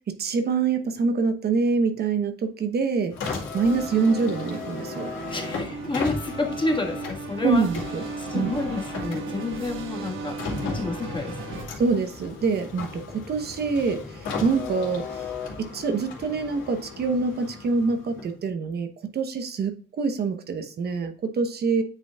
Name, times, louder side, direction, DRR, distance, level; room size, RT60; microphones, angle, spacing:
voice 1, 0.1-5.1 7.4-8.0 8.3-8.5 11.8-15.2 15.6-21.8, right 4 dB, 55° right, 7 dB, 0.9 m, -25 dB
Car, 3.1-18.5, left 4 dB, 75° left, 2.4 m, -36 dB
sound 1, 3.6-11.6, right 4 dB, 90° right, 1.3 m, -36 dB
voice 2, 5.3-7.6 8.2-11.6, left 3 dB, 25° left, 2 dB, 1.6 m, -29 dB
8.8 x 5.1 x 2.3 m, 0.41 s
cardioid pair, 90°, 20 cm